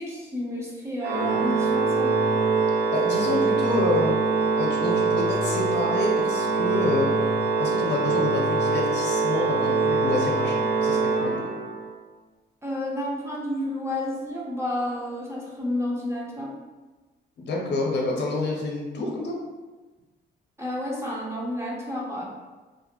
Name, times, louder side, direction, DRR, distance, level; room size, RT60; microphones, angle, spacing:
voice 1, 0.0-2.2 12.6-16.5 20.6-22.2, left 1 dB, 15° right, -4 dB, 0.6 m, -30 dB
Organ, 1.0-11.9, right 4 dB, 60° right, 0.5 m, -24 dB
voice 2, 2.9-4.2 4.5-7.1 7.6-11.4 17.4-19.4, left 2 dB, 60° left, 0 dB, 0.7 m, -28 dB
2.5 x 2.1 x 2.8 m, 1.2 s
cardioid pair, 90°, 20 cm